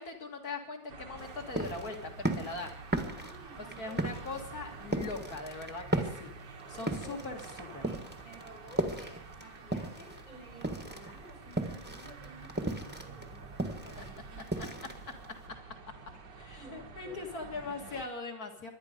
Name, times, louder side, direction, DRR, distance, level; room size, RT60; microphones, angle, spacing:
voice 1, 0.0-2.7 3.6-6.3 6.7-7.9 14.0-14.1 14.8-14.9 15.5-15.6 16.4-18.7, left 3 dB, 55° left, 2 dB, 2.4 m, -41 dB
sound 1, 0.9-18.0, right 4 dB, 70° right, 2.0 m, -49 dB
sound 2, 1.2-10.2 10.5-15.5, right 1 dB, 5° right, 1.2 m, -35 dB
voice 2, 2.8-4.0 6.7-7.4 7.8-14.5 16.6-17.2, right 1 dB, 80° left, -3 dB, 7.5 m, -53 dB
25.5 x 11.0 x 5.2 m, 0.78 s
omnidirectional pair, 2.0 m